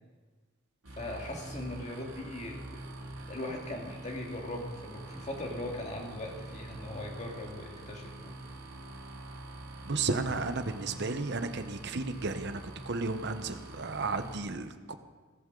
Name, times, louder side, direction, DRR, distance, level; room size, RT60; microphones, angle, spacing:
sound 1, 0.8-14.4, right 2 dB, 85° right, 2.8 m, -45 dB
voice 1, 0.9-2.6 3.3-8.4, left 1 dB, 35° left, 0 dB, 2.1 m, -39 dB
voice 2, 9.9-14.9, right 3 dB, 55° right, 8 dB, 0.9 m, -33 dB
17.0 x 14.0 x 3.9 m, 1.4 s
head